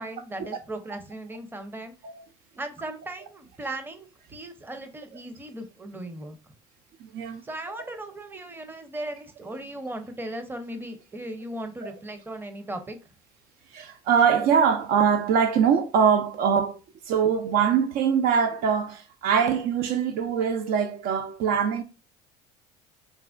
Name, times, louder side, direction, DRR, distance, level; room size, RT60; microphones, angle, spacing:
voice 1, 0.0-1.9 2.6-6.4 7.4-13.0, right 1 dB, 10° right, 0.6 m, -37 dB
voice 2, 7.0-7.4 11.8-11.9 13.7-16.8 17.1-21.8, right 7 dB, 65° right, 0.4 m, -23 dB
3.3 x 2.1 x 2.5 m
hypercardioid pair, 75°, 17 cm